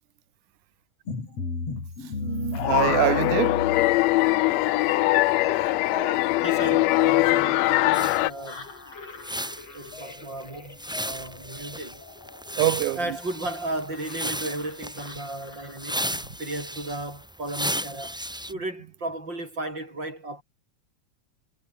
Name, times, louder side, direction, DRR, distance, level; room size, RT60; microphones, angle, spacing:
sound 1, 1.1-16.3, left 4 dB, 50° left, 6.3 m, -37 dB
voice 1, 2.2-3.8 12.6-13.0, right 15 dB, 80° right, 2.2 m, -25 dB
sound 2, 2.5-8.3, left 19 dB, 80° left, 1.5 m, -22 dB
voice 2, 6.4-8.7 9.7-12.0 12.9-18.2 18.5-20.4, right 2 dB, 35° right, 8.7 m, -35 dB
sound 3, 7.9-18.5, equal, ahead, 1.2 m, -35 dB
omnidirectional pair, 3.6 m